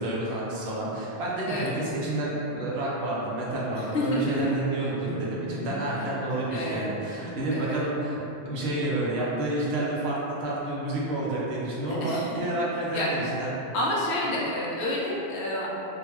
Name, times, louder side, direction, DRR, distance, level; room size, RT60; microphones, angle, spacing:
voice 1, 0.0-8.2 8.4-13.5, right 1 dB, 75° right, -6 dB, 1.0 m, -29 dB
voice 2, 3.8-4.5 6.5-6.9 7.5-7.8 12.0-12.6 12.9-13.1 13.7-15.7, left 1 dB, 85° left, -4 dB, 0.9 m, -29 dB
Guitar, 4.4-7.7, right 5 dB, 65° left, 1.2 m, -39 dB
3.7 x 2.2 x 2.9 m, 3.0 s
omnidirectional pair, 1.1 m